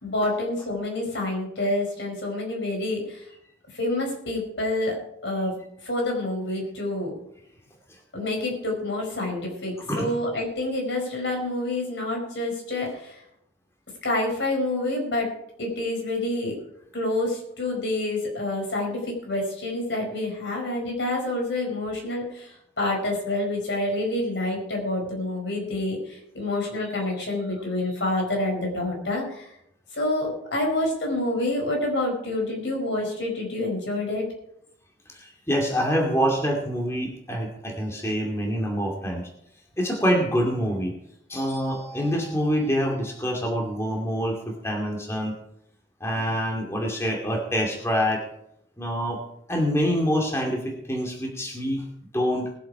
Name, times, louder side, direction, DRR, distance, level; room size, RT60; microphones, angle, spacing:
voice 1, 0.0-3.2 3.7-5.0 5.2-5.6 5.8-7.2 8.1-13.2 14.0-15.3 15.6-16.6 16.9-29.5 29.9-34.2, left 1 dB, 90° left, 1 dB, 5.1 m, -28 dB
voice 2, 35.1-39.3 39.8-40.9 41.3-45.3 46.0-48.2 48.8-49.2 49.5-51.8 52.1-52.5, equal, 15° left, 0 dB, 2.3 m, -26 dB
20.5 x 7.7 x 4.9 m, 0.76 s
head